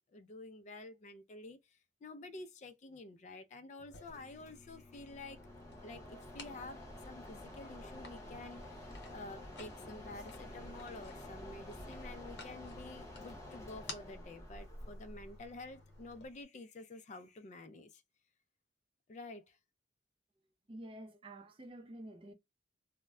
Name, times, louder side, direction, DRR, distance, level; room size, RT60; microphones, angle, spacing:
voice 1, 0.1-1.6 2.0-5.4 5.8-18.0 19.1-19.6, left 2 dB, 40° left, 0.3 m, -50 dB
sound 1, 3.8-16.3, left 3 dB, 85° left, 0.9 m, -56 dB
Mechanisms, 4.1-16.4, left 1 dB, 15° left, 0.7 m, -50 dB
voice 2, 20.7-22.3, right 1 dB, 30° right, 0.4 m, -49 dB
2.1 x 2.1 x 3.5 m
head